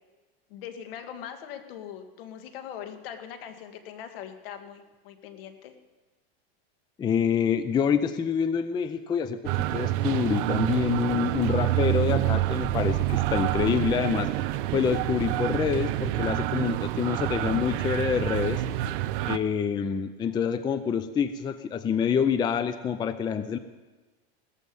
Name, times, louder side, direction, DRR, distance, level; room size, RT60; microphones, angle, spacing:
voice 1, 0.5-5.7, left 9 dB, 70° left, 7 dB, 2.1 m, -41 dB
voice 2, 7.0-9.4 9.7-14.3 14.7-18.6 19.2-23.6, left 7 dB, 15° left, 12 dB, 0.5 m, -26 dB
sound 1, 9.4-19.4, right 15 dB, 60° right, 0.8 m, -27 dB
17.5 x 14.0 x 5.4 m, 1.2 s
supercardioid pair, 140°, 30 cm